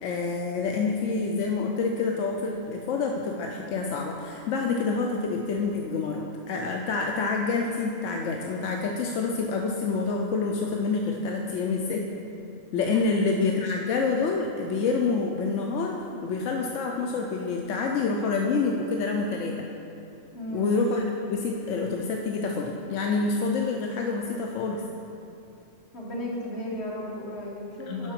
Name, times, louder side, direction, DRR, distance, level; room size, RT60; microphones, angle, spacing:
voice 1, 0.0-12.1 12.7-19.7 20.5-21.0 21.3-24.8 27.9-28.1, left 4 dB, 85° left, 1 dB, 1.0 m, -27 dB
voice 2, 20.3-20.7 25.9-28.1, equal, 60° left, -3 dB, 1.7 m, -34 dB
7.8 x 5.5 x 5.9 m, 2.7 s
omnidirectional pair, 1.3 m